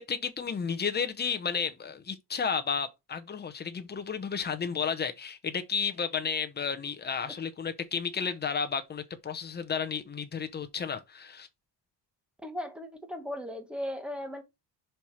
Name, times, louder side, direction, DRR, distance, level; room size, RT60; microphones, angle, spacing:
voice 1, 0.0-11.5, left 6 dB, 25° left, 0.8 m, -32 dB
voice 2, 12.4-14.4, left 1 dB, 5° right, 1.0 m, -37 dB
5.8 x 4.4 x 4.6 m
cardioid pair, 175°, 40 cm